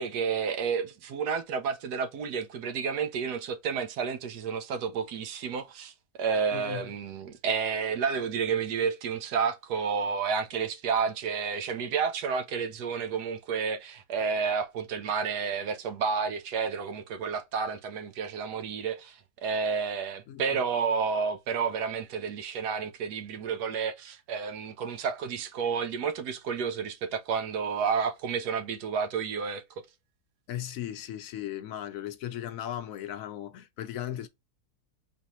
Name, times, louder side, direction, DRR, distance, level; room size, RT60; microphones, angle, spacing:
voice 1, 0.0-5.9 6.2-29.6, right 6 dB, 90° right, 1.3 m, -30 dB
voice 2, 6.5-6.9 20.3-20.4 30.5-34.3, left 11 dB, 70° left, 0.9 m, -37 dB
4.7 x 3.5 x 3.0 m
omnidirectional pair, 1.7 m